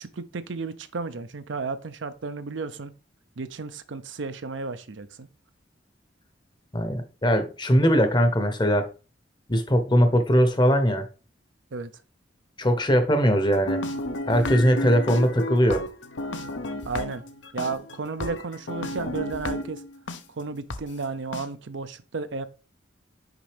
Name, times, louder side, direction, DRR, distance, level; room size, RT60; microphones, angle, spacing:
voice 1, 0.0-2.9 3.4-5.3 11.7-11.9 16.8-17.2 17.5-19.8 20.3-22.5, right 4 dB, 75° right, 0.6 m, -33 dB
voice 2, 6.7-8.9 9.5-11.1 12.6-13.8 14.3-15.8, equal, 25° left, 0.8 m, -20 dB
sound 1, 13.5-20.2 20.7-20.8 21.3-21.4, left 1 dB, 70° left, 0.8 m, -32 dB
6.0 x 5.2 x 3.4 m
head